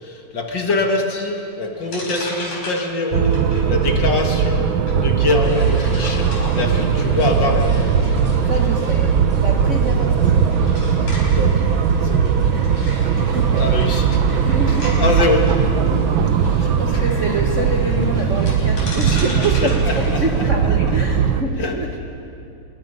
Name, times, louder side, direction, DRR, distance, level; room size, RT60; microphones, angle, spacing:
voice 1, 0.0-3.4 3.7-4.7 5.0-7.9 10.6-10.8 11.3-11.6 12.0-12.3 13.6-14.2 14.7-15.5 16.4-16.8 18.8-18.9 19.9-20.2 21.6-21.7, left 2 dB, 40° left, 2 dB, 2.1 m, -23 dB
sound 1, 1.4-1.5 1.8-14.9 15.4-15.5 18.5-21.2, left 2 dB, 60° left, 6.3 m, -36 dB
sound 2, 3.1-21.4, right 7 dB, 85° right, 1.1 m, -18 dB
sound 3, 5.4-20.5, left 1 dB, 25° left, 0.9 m, -39 dB
voice 2, 8.5-9.1 9.4-10.6 13.0-13.8 14.5-15.0 16.6-22.0, right 2 dB, 65° right, 2 dB, 0.7 m, -26 dB
26.0 x 21.5 x 5.5 m, 2.6 s
omnidirectional pair, 3.5 m